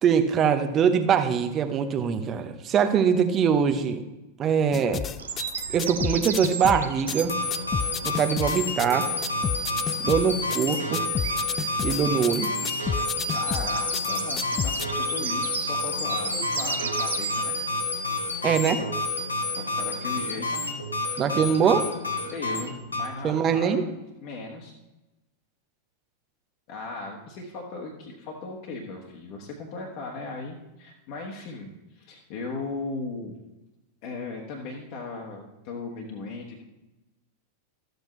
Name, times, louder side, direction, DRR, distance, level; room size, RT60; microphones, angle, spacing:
voice 1, 0.0-4.0 4.4-5.0 5.7-7.3 8.0-9.1 10.0-11.0 11.8-12.5 18.4-18.8 21.2-21.9 23.2-23.8, right 7 dB, 30° right, 7 dB, 0.8 m, -23 dB
sound 1, 4.7-14.9, left 8 dB, 25° left, 0.3 m, -31 dB
sound 2, 5.2-17.7, right 7 dB, 65° right, 0.6 m, -37 dB
sound 3, 7.2-23.1, left 2 dB, 80° left, 1.4 m, -29 dB
voice 2, 13.3-17.5 19.5-20.7 22.2-23.8 24.2-24.7 26.7-33.4 34.0-36.6, left 3 dB, 45° left, 0 dB, 1.3 m, -37 dB
13.0 x 7.9 x 3.1 m, 1.0 s
figure-of-eight pair, 90°, 0 cm